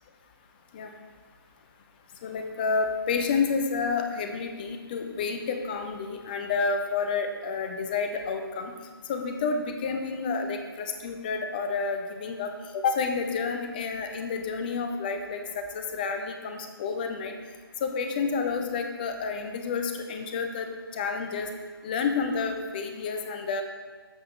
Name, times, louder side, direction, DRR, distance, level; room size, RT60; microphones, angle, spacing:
voice 1, 2.2-8.7 9.1-17.3 17.8-20.7 20.9-21.5 21.8-23.6, left 5 dB, 20° left, 5 dB, 0.6 m, -30 dB
13.5 x 4.9 x 3.0 m, 1.5 s
figure-of-eight pair, 145°, 13 cm